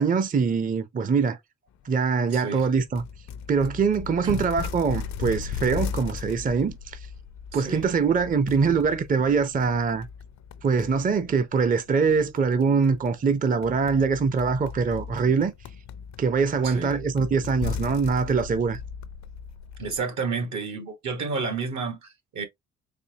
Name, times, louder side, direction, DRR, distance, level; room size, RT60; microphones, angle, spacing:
voice 1, 0.0-1.4 1.9-3.0 3.5-7.0 7.5-10.1 10.6-15.5 16.2-18.8, right 5 dB, 30° right, 0.5 m, -23 dB
voice 2, 2.3-2.7 4.2-4.4 7.5-7.8 16.6-16.9 19.8-22.4, right 4 dB, 70° right, 1.3 m, -31 dB
sound 1, 2.6-20.0, left 7 dB, 65° left, 0.5 m, -37 dB
4.2 x 2.7 x 2.7 m
supercardioid pair, 60°, 29 cm